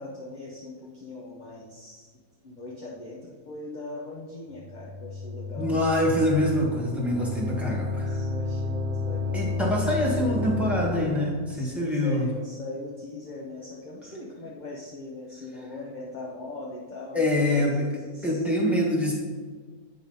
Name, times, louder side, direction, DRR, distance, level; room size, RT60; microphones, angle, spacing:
voice 1, 0.0-2.1 2.4-5.9 7.4-9.6 10.1-10.2 11.5-18.4, left 2 dB, 35° left, -3 dB, 0.8 m, -40 dB
sound 1, 4.6-11.4, left 2 dB, 85° right, 0.4 m, -31 dB
voice 2, 5.6-8.2 9.3-12.2 17.1-17.9 18.2-19.1, left 1 dB, ahead, -3 dB, 1.5 m, -25 dB
9.0 x 4.0 x 5.4 m, 1.5 s
omnidirectional pair, 1.7 m